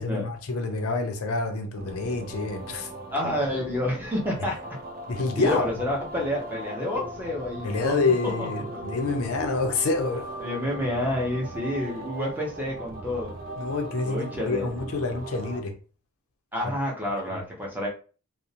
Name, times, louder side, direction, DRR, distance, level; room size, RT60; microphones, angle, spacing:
voice 1, 0.0-2.9 5.1-5.7 7.6-10.3 13.6-15.7 17.3-17.4, left 3 dB, 70° left, 0.5 m, -27 dB
sound 1, 1.7-15.6, right 1 dB, 40° right, 0.5 m, -39 dB
voice 2, 3.1-4.6 5.3-8.0 8.4-8.8 10.4-13.3 14.0-14.7 16.5-17.9, left 1 dB, 10° right, 0.7 m, -29 dB
2.4 x 2.0 x 2.8 m
head